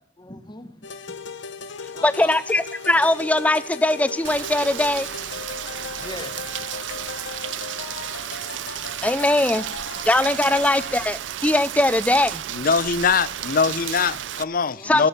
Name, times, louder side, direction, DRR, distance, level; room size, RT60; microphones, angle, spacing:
voice 1, 0.2-2.4 5.8-6.8 10.5-10.6 14.1-15.1, left 2 dB, 25° left, 1.2 m, -42 dB
sound 1, 0.8-11.1, left 4 dB, 80° left, 1.0 m, -37 dB
voice 2, 2.0-5.1 9.0-9.6 10.0-12.4 14.8-15.1, left 1 dB, 10° left, 0.5 m, -20 dB
sound 2, 2.5-8.9, right 2 dB, 65° right, 7.5 m, -52 dB
Rain, 4.2-14.4, right 11 dB, 85° right, 0.4 m, -33 dB
voice 3, 12.5-15.1, left 5 dB, 50° left, 0.6 m, -22 dB
17.5 x 7.5 x 6.6 m
head